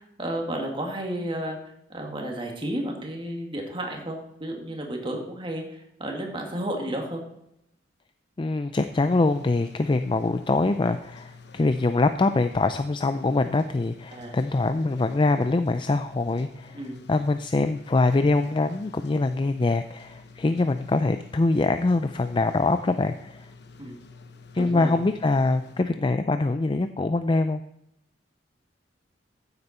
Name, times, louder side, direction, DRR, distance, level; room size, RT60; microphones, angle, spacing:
voice 1, 0.0-1.6 1.9-7.2 14.1-14.4 16.7-17.0 23.8-24.0 24.6-24.9, right 1 dB, 30° right, 1 dB, 2.3 m, -32 dB
voice 2, 8.4-16.8 17.1-23.5 24.5-27.6, left 3 dB, 25° left, 10 dB, 0.4 m, -24 dB
sound 1, 8.8-25.8, left 4 dB, 65° left, 1.0 m, -49 dB
14.5 x 8.0 x 4.4 m, 0.80 s
head